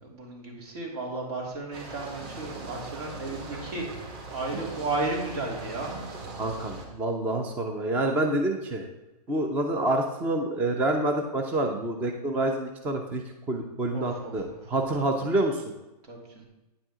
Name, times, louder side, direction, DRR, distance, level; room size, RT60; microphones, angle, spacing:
voice 1, 0.0-3.9 4.3-5.9 13.9-14.8 16.0-16.4, right 2 dB, 75° right, -2 dB, 3.0 m, -34 dB
sound 1, 1.7-6.9, right 3 dB, 40° right, 1.7 m, -40 dB
voice 2, 6.4-8.9 9.3-15.6, right 1 dB, 10° right, 3 dB, 0.3 m, -27 dB
9.1 x 7.7 x 3.7 m, 1.0 s
hypercardioid pair, 155°, 21 cm